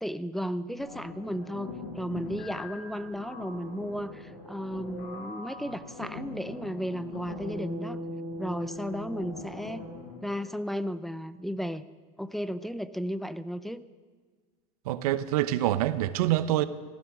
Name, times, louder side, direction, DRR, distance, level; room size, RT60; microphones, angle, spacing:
voice 1, 0.0-8.0 8.4-9.8 10.2-11.8 12.2-13.8, equal, ahead, 0.5 m, -34 dB
sound 1, 0.8-10.3, left 2 dB, 65° left, 4.8 m, -41 dB
voice 2, 14.9-16.7, right 13 dB, 80° right, 0.9 m, -26 dB
15.5 x 15.0 x 6.1 m
supercardioid pair, 130°, 19 cm